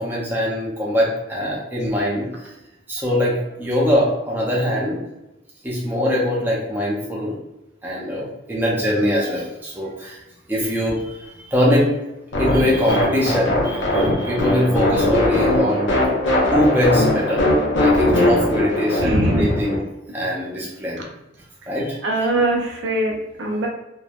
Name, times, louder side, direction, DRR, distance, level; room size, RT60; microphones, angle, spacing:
voice 1, 0.0-2.5 2.9-5.0 5.6-7.4 7.8-10.2 10.5-11.9 12.4-15.9 16.5-17.5 17.8-19.8 20.1-21.0 21.7-22.0, equal, 10° right, -5 dB, 0.5 m, -22 dB
sound 1, 12.3-19.8, left 1 dB, 75° left, 0.7 m, -20 dB
voice 2, 19.0-19.6 22.0-23.7, right 1 dB, 70° right, 0 dB, 0.5 m, -21 dB
3.1 x 2.1 x 2.3 m, 0.94 s
head